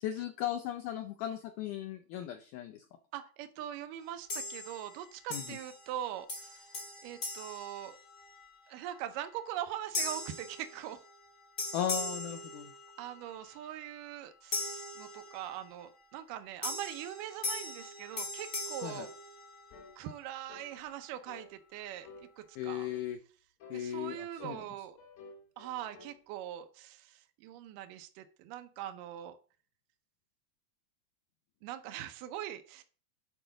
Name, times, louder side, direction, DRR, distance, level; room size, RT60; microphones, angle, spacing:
voice 1, 0.0-2.9 5.3-5.6 11.7-12.7 18.8-19.1 22.6-23.2 23.7-24.6, left 10 dB, 80° left, 7 dB, 1.8 m, -37 dB
voice 2, 3.1-6.7 7.0-8.0 8.7-11.0 13.0-19.1 20.0-22.9 23.7-25.0 25.6-29.4 31.6-32.8, right 11 dB, 75° right, 8 dB, 2.1 m, -42 dB
sound 1, 4.3-5.0 5.3-6.0 6.3-8.5 9.0-9.2 9.9-11.3 11.6-13.2 14.5-15.7 16.6-19.9, left 2 dB, 35° left, 1.3 m, -40 dB
sound 2, 18.9-19.2 19.7-20.0 20.5-20.7 21.3-21.5 22.0-22.3 22.8-23.1 23.6-23.9 24.4-26.2, left 3 dB, 60° left, 2.0 m, -52 dB
10.0 x 4.9 x 3.8 m, 0.39 s
omnidirectional pair, 4.3 m